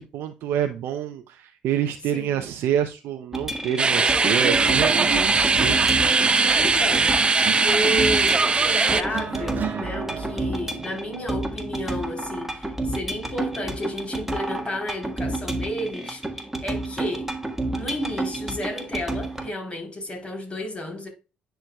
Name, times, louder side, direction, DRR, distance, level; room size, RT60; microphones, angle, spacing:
voice 1, 0.0-6.0, right 10 dB, 70° right, 0.6 m, -27 dB
voice 2, 2.1-2.4 6.5-7.2 7.6-17.3 17.7-21.1, left 1 dB, 30° left, 3.5 m, -32 dB
sound 1, 3.3-19.5, right 2 dB, 10° right, 1.5 m, -31 dB
sound 2, 3.8-9.0, right 4 dB, 25° right, 0.5 m, -20 dB
sound 3, 4.4-13.2 14.1-14.4, right 6 dB, 50° right, 1.1 m, -34 dB
9.9 x 4.5 x 2.3 m
supercardioid pair, 60°, 4 cm